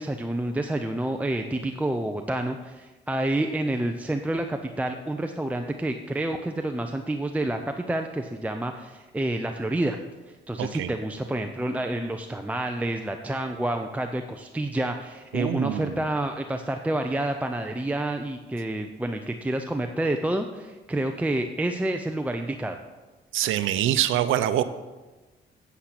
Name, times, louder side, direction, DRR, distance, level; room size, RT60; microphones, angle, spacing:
voice 1, 0.0-10.0 10.3-22.8, right 1 dB, 5° right, 5 dB, 0.6 m, -29 dB
voice 2, 10.6-10.9 15.3-16.0 23.3-24.6, right 12 dB, 85° right, 12 dB, 0.7 m, -25 dB
8.5 x 8.2 x 5.9 m, 1.2 s
cardioid pair, 90°, 20 cm